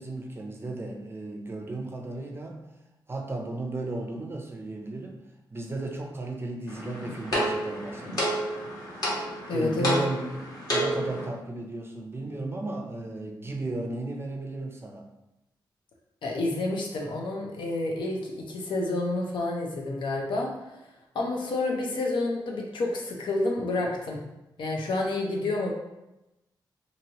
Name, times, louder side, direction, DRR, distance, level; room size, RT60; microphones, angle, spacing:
voice 1, 0.0-2.7 3.1-5.3 5.5-8.4 9.5-15.1, right 2 dB, 30° right, 2 dB, 0.5 m, -35 dB
sound 1, 6.7-11.3, equal, 50° left, 1.1 m, -30 dB
voice 2, 9.5-10.0 16.2-20.5 21.1-24.2 24.6-25.7, left 2 dB, 80° left, 0 dB, 0.6 m, -29 dB
2.9 x 2.6 x 2.8 m, 0.95 s
cardioid pair, 100°, 8 cm